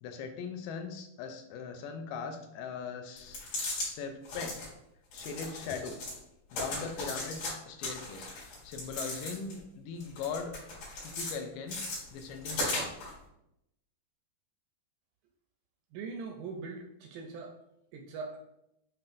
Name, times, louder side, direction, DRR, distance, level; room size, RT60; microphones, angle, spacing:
voice 1, 0.0-3.4 3.8-4.6 5.1-6.0 6.5-10.5 11.0-11.8 12.1-12.9, left 5 dB, 80° left, 6 dB, 2.2 m, -40 dB
sound 1, 3.2-3.9 4.2-4.7 5.1-6.2 6.5-7.5 7.8-9.6 10.0-11.3 11.7-13.1, left 2 dB, 65° left, 3.1 m, -37 dB
voice 2, 15.9-17.6 17.9-18.4, right 4 dB, 80° right, 2 dB, 1.9 m, -41 dB
7.5 x 2.7 x 2.5 m, 0.82 s
omnidirectional pair, 4.0 m